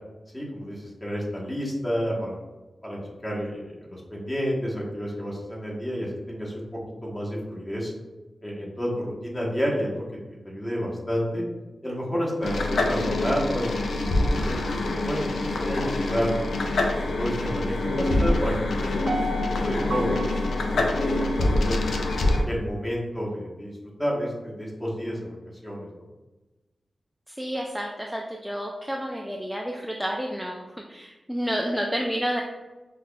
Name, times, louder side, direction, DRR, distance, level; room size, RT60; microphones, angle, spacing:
voice 1, 0.3-2.4 2.8-6.6 7.0-7.9 8.4-11.4 11.8-16.5 17.0-19.1 19.4-20.9 21.4-21.8 22.2-23.7 24.0-25.3 25.6-26.0, equal, 20° left, -4 dB, 1.0 m, -30 dB
sound 1, 12.4-22.4, left 2 dB, 90° left, 0.3 m, -25 dB
Piano, 19.1-22.1 22.6-22.7, equal, 60° right, 0.5 m, -35 dB
voice 2, 27.4-32.4, equal, 5° right, 0 dB, 0.3 m, -30 dB
5.5 x 2.4 x 2.2 m, 1.1 s
wide cardioid pair, 80°, 0 cm